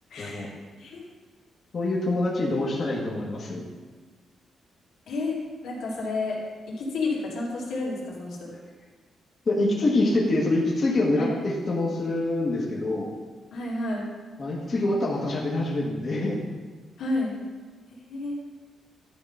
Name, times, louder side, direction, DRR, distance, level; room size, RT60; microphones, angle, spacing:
voice 1, 0.1-0.5 0.8-1.1 5.1-6.4 6.7-8.5 11.1-11.3 13.5-14.1 17.0-17.3 17.9-18.3, left 2 dB, 85° left, -4 dB, 2.4 m, -30 dB
voice 2, 1.7-3.6 9.4-13.1 14.4-16.4, left 2 dB, 35° left, -4 dB, 1.4 m, -25 dB
11.5 x 3.9 x 5.5 m, 1.4 s
cardioid pair, 145°, 0 cm